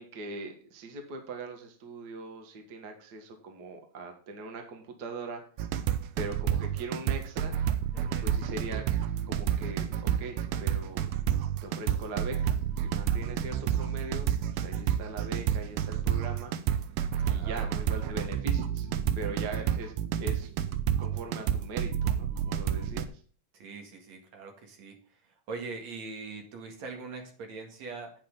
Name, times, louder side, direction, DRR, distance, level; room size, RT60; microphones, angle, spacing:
voice 1, 0.0-5.4 6.2-7.5 8.2-8.8 9.3-11.1 11.6-12.6 12.8-16.5 17.2-18.9 19.1-19.9 20.2-20.5 21.0-23.1, right 3 dB, 40° right, 4 dB, 1.6 m, -40 dB
sound 1, 5.6-23.1, right 10 dB, 85° right, 2.4 m, -29 dB
voice 2, 7.9-8.3 17.3-17.7 19.2-19.7 23.5-28.1, right 4 dB, 60° right, 3 dB, 3.0 m, -42 dB
8.9 x 8.5 x 3.8 m, 0.43 s
omnidirectional pair, 3.7 m